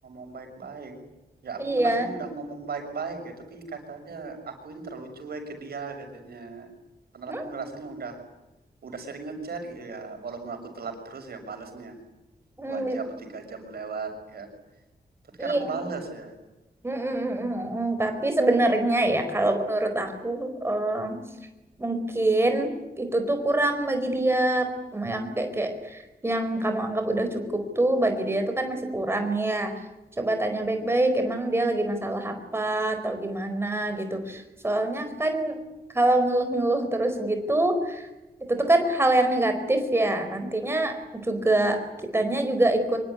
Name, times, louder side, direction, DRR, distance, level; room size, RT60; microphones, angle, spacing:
voice 1, 0.0-1.0 1.4-6.7 7.1-8.2 8.8-12.0 12.6-14.5 15.4-16.4, right 4 dB, 75° right, 5 dB, 6.7 m, -37 dB
voice 2, 1.6-2.1 7.3-7.4 12.6-13.0 15.4-15.8 16.8-21.2 21.8-29.7 30.2-35.6 35.9-38.0 38.5-40.9 41.3-41.8 42.1-43.0, right 1 dB, 15° right, 6 dB, 4.6 m, -25 dB
25.5 x 23.5 x 9.8 m, 1.0 s
wide cardioid pair, 175°, 16 cm